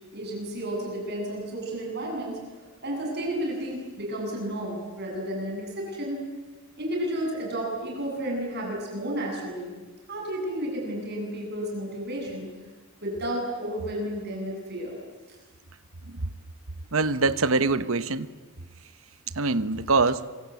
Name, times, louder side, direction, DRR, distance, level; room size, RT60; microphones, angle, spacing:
voice 1, 0.1-6.2 6.8-9.7 10.1-12.5 13.0-15.0, right 1 dB, 50° right, 0 dB, 7.9 m, -32 dB
voice 2, 16.9-18.3 19.3-20.2, right 3 dB, 65° right, 13 dB, 1.1 m, -24 dB
26.0 x 24.5 x 8.4 m, 1.3 s
head